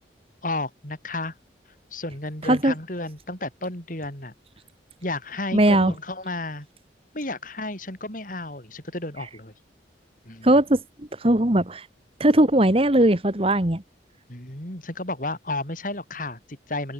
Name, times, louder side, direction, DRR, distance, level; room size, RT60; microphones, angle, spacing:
voice 1, 0.4-1.3 1.9-4.3 5.0-6.7 7.1-9.5 10.2-10.5 14.3-16.9, left 2 dB, 45° left, 6.4 m, -32 dB
voice 2, 2.4-2.7 5.5-5.9 10.4-11.9 12.2-13.8, right 1 dB, 30° right, 1.7 m, -19 dB
open air
head